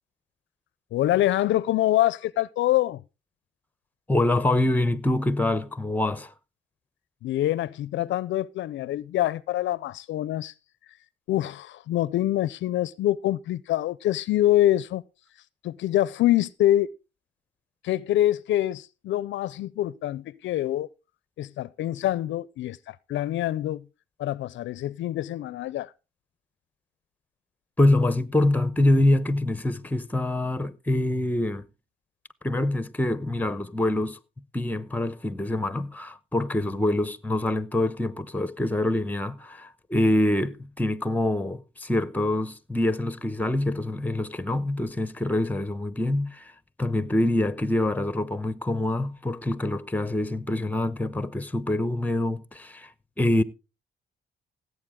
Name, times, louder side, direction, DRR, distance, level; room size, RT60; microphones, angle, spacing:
voice 1, 0.9-3.0 7.2-10.5 11.3-15.0 15.6-16.9 17.8-20.9 21.4-23.9 24.2-25.9, left 13 dB, 70° left, 0.5 m, -25 dB
voice 2, 4.1-6.3 27.8-31.6 32.4-34.2 34.5-46.5 46.8-52.9 53.2-53.4, left 1 dB, 10° left, 0.8 m, -25 dB
16.5 x 8.1 x 3.6 m
cardioid pair, 90°, 20 cm